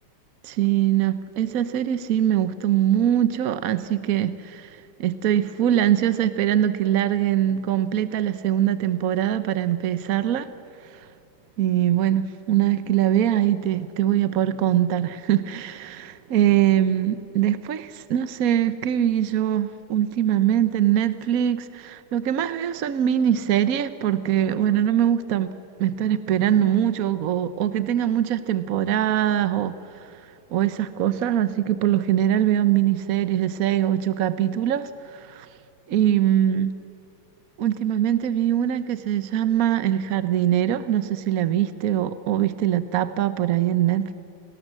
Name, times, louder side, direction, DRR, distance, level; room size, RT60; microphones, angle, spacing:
voice 1, 0.4-10.5 10.9-11.1 11.6-25.5 25.8-30.2 30.5-35.5 35.9-36.7 37.6-44.1, right 11 dB, 65° right, 12 dB, 0.9 m, -22 dB
30.0 x 19.0 x 7.5 m, 2.7 s
omnidirectional pair, 2.4 m